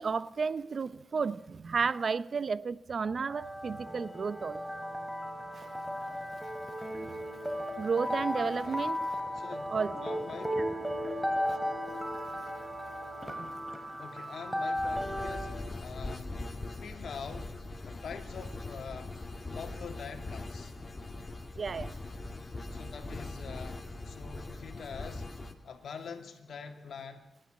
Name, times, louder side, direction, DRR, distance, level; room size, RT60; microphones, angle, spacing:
voice 1, 0.0-4.6 7.8-9.0 9.7-10.0 10.5-10.6 21.6-21.9, right 5 dB, 55° right, 0.8 m, -32 dB
sound 1, 3.2-15.6, equal, 5° right, 2.9 m, -35 dB
voice 2, 9.3-10.6 14.0-16.4 16.8-17.5 17.9-19.1 19.5-20.7 22.7-25.3 25.6-27.3, left 6 dB, 75° left, 2.6 m, -45 dB
sound 2, 14.7-25.5, left 2 dB, 35° left, 2.4 m, -41 dB
25.5 x 11.5 x 8.9 m
cardioid pair, 65°, 0 cm